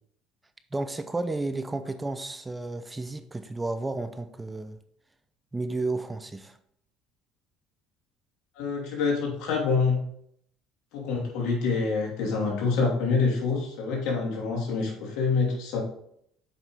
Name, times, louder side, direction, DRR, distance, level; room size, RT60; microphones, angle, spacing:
voice 1, 0.7-4.8 5.5-6.6, right 2 dB, 15° right, 9 dB, 0.6 m, -32 dB
voice 2, 8.6-10.0 10.9-15.8, left 4 dB, 75° left, -1 dB, 2.7 m, -26 dB
7.5 x 5.2 x 3.8 m, 0.70 s
supercardioid pair, 90°, 0 cm